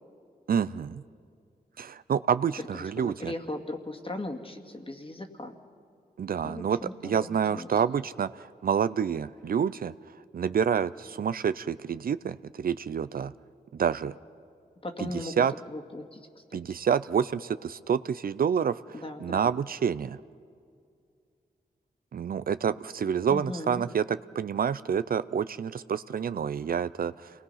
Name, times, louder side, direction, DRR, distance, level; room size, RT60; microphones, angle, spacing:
voice 1, 0.5-1.0 1.8-3.3 6.2-9.9 10.3-13.3 13.7-14.1 15.0-15.5 16.5-18.8 19.2-20.2 22.1-27.3, right 7 dB, 60° right, 15 dB, 0.5 m, -28 dB
voice 2, 2.6-5.6 6.4-7.8 14.8-15.3 15.7-16.6 18.9-19.6 23.3-23.8, left 1 dB, 35° left, 3 dB, 2.3 m, -38 dB
27.5 x 20.0 x 5.7 m, 2.3 s
cardioid pair, 40°, 17 cm